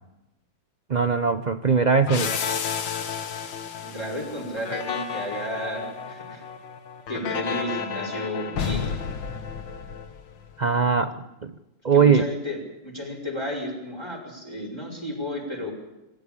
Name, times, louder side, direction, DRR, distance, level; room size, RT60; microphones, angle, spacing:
voice 1, 0.9-2.6 10.6-11.5 11.8-12.3, right 5 dB, 65° right, 10 dB, 0.4 m, -21 dB
sound 1, 2.1-10.5, left 7 dB, 90° left, 2.0 m, -32 dB
voice 2, 3.8-6.5 7.1-8.9 11.0-11.2 11.9-15.7, equal, 15° left, -2 dB, 5.1 m, -33 dB
24.5 x 13.0 x 8.7 m, 0.98 s
omnidirectional pair, 1.9 m